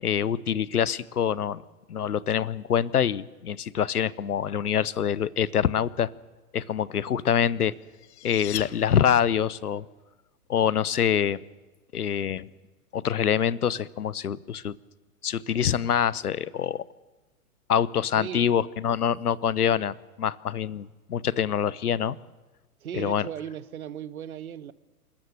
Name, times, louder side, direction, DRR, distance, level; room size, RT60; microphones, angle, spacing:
voice 1, 0.0-1.6 1.9-6.1 6.5-7.7 8.2-9.8 10.5-11.4 11.9-12.5 12.9-14.8 15.2-16.8 17.7-22.2 22.9-23.3, left 8 dB, 75° left, 21 dB, 0.8 m, -25 dB
sound 1, 7.7-9.6, left 14 dB, 45° left, 0.9 m, -40 dB
voice 2, 18.1-18.4 22.8-24.7, right 9 dB, 65° right, 17 dB, 1.1 m, -37 dB
28.0 x 13.5 x 7.9 m, 1.2 s
figure-of-eight pair, 105°, 46 cm